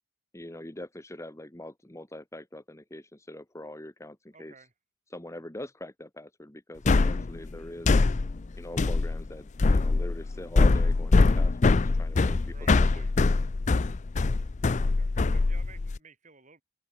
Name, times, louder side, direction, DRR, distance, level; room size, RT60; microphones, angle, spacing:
voice 1, 0.3-4.5 5.1-8.0 8.6-13.1, left 1 dB, 15° left, 1.3 m, -43 dB
voice 2, 4.3-4.7 12.5-13.1 15.0-16.6, right 5 dB, 40° right, 8.0 m, -54 dB
sound 1, 6.9-16.0, left 3 dB, 40° left, 0.5 m, -23 dB
open air
head